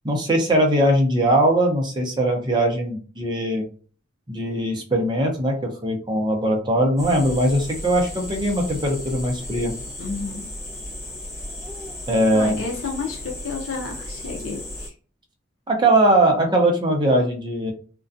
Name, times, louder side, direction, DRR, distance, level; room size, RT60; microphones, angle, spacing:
voice 1, 0.0-3.6 4.3-9.7 12.1-12.6 15.7-17.7, right 1 dB, 25° right, 1 dB, 0.6 m, -20 dB
sound 1, 7.0-14.9, left 1 dB, 15° left, 0.7 m, -35 dB
voice 2, 10.0-10.5 12.3-14.9, left 4 dB, 80° left, 1 dB, 0.6 m, -31 dB
2.4 x 2.2 x 2.5 m, 0.39 s
head